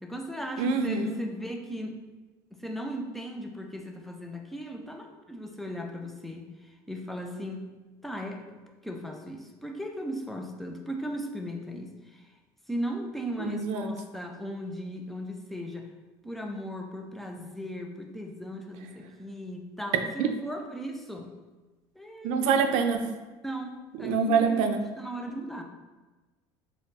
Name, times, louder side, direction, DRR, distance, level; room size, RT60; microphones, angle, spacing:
voice 1, 0.0-2.0 2.5-6.5 6.9-7.7 8.0-8.4 8.8-12.2 12.7-15.9 16.2-21.3 22.0-22.5 23.4-25.6, equal, ahead, 2 dB, 0.3 m, -37 dB
voice 2, 0.6-1.2 13.4-13.9 20.2-20.3 22.2-23.0 23.9-24.8, right 5 dB, 80° right, 7 dB, 0.4 m, -25 dB
3.2 x 2.0 x 4.0 m, 1.2 s
cardioid pair, 140°, 12 cm